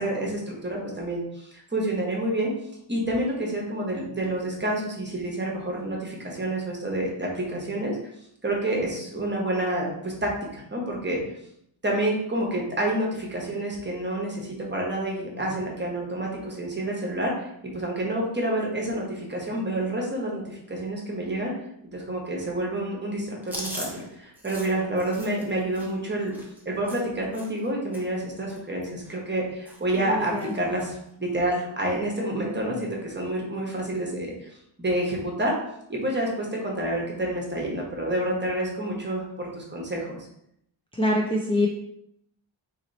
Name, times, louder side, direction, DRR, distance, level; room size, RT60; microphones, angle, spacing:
voice 1, 0.0-2.5 2.9-8.0 8.4-11.2 11.8-17.5 17.7-21.6 21.8-26.3 26.6-34.5 34.8-35.5 35.9-40.2, right 1 dB, 20° right, -2 dB, 1.0 m, -28 dB
Chewing mastication, 23.4-27.7 27.9-28.2 28.5-29.4 29.6-30.0 30.2-30.9 31.3-31.5 32.5-32.9, equal, 5° right, 0.8 m, -41 dB
voice 2, 30.0-30.5 41.0-41.7, left 1 dB, 10° left, -1 dB, 0.4 m, -24 dB
2.9 x 2.8 x 4.0 m, 0.75 s
wide cardioid pair, 95°, 48 cm